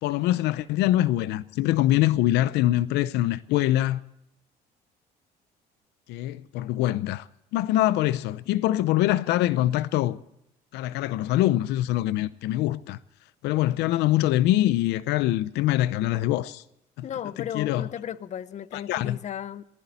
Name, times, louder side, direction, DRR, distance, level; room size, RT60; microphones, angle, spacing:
voice 1, 0.0-4.0 6.1-7.3 7.5-10.2 10.7-13.0 13.4-16.6 17.5-17.9 18.7-19.2, left 14 dB, 90° left, 0.6 m, -24 dB
voice 2, 17.0-19.6, left 9 dB, 45° left, 0.7 m, -35 dB
19.0 x 15.5 x 4.1 m
cardioid pair, 110°, 17 cm